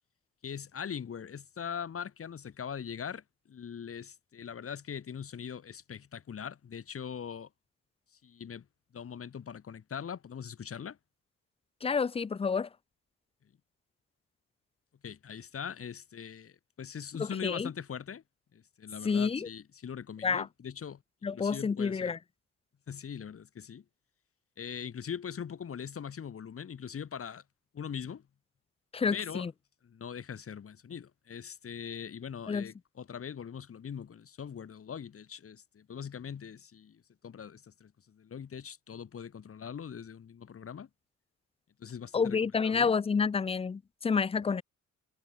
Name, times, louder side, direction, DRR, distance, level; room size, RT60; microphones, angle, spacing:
voice 1, 0.4-7.5 8.2-8.6 8.9-11.0 15.0-18.2 18.5-21.0 21.3-22.1 22.9-23.8 24.6-27.4 27.7-28.3 29.1-29.5 29.8-40.9 41.8-43.0 44.5-44.6, left 7 dB, 50° left, 3.3 m, -41 dB
voice 2, 11.8-12.7 17.2-17.7 19.0-19.5 20.2-20.5 21.2-22.2 28.9-29.5 32.5-32.7 42.1-44.6, left 5 dB, 20° left, 0.5 m, -29 dB
cardioid pair, 90°, 30 cm